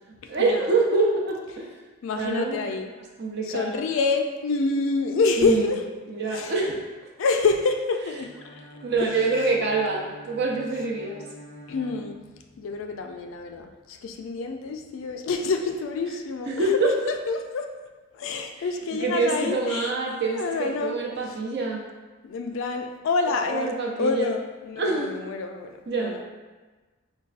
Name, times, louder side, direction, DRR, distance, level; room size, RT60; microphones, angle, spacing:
voice 1, 0.3-1.7 2.1-2.8 3.2-3.8 5.4-5.6 6.1-6.8 8.8-11.2 16.5-16.9 19.0-21.8 23.5-24.3 24.8-25.1 25.9-26.2, right 3 dB, 50° right, -2 dB, 0.6 m, -25 dB
voice 2, 2.0-2.9 3.4-5.8 6.3-6.5 7.2-8.6 9.0-9.2 11.7-12.2 12.6-17.7 18.1-19.9 20.2-21.0 21.2-21.4 22.2-23.7 24.0-26.2, left 4 dB, 65° left, 4 dB, 0.3 m, -27 dB
Bowed string instrument, 8.2-12.7, equal, 70° right, 1.2 m, -46 dB
5.2 x 2.3 x 2.4 m, 1.3 s
head